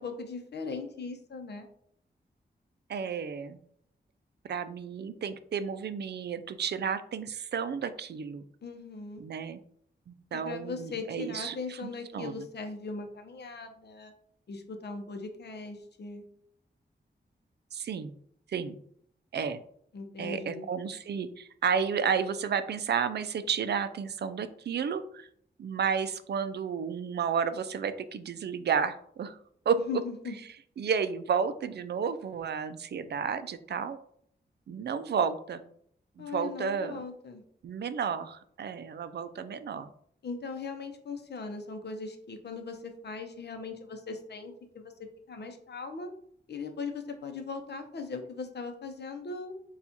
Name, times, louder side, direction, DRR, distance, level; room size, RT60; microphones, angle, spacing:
voice 1, 0.0-1.7 8.6-9.2 10.3-14.1 14.5-16.2 19.9-20.7 29.8-30.3 36.2-37.4 40.2-44.9 45.3-46.1 46.5-49.5, left 4 dB, 65° left, 5 dB, 0.7 m, -39 dB
voice 2, 2.9-3.6 4.4-8.4 9.2-9.6 10.1-12.5 17.7-18.1 18.5-18.8 19.3-19.6 20.2-25.3 25.6-29.4 29.7-29.8 30.8-34.0 34.7-35.6 36.2-37.0 37.6-39.9, right 6 dB, 65° right, 12 dB, 0.4 m, -32 dB
6.9 x 2.4 x 2.8 m, 0.65 s
wide cardioid pair, 105°, 19 cm